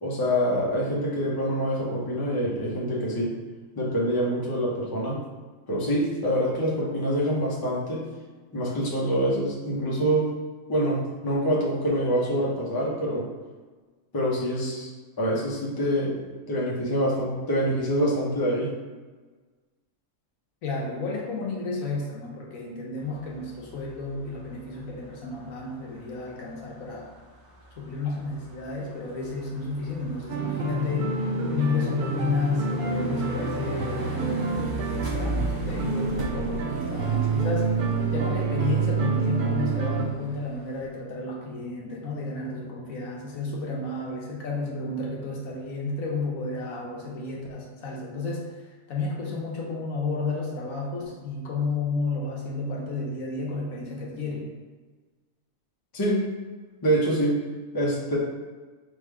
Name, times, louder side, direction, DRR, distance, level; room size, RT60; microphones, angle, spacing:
voice 1, 0.0-3.3 3.8-5.2 5.7-8.0 8.5-10.3 10.7-13.3 14.1-14.9 15.2-16.2 16.5-18.7 55.9-56.3 56.8-57.4 57.7-58.2, equal, 20° left, -5 dB, 0.7 m, -25 dB
voice 2, 20.6-27.1 27.8-31.1 31.5-37.8 38.1-54.5, left 3 dB, 80° left, -2 dB, 1.2 m, -32 dB
sound 1, 23.0-40.9, equal, 25° right, 0.5 m, -40 dB
sound 2, 30.3-40.1, right 4 dB, 80° right, 0.4 m, -27 dB
3.6 x 2.6 x 4.6 m, 1.3 s
omnidirectional pair, 1.4 m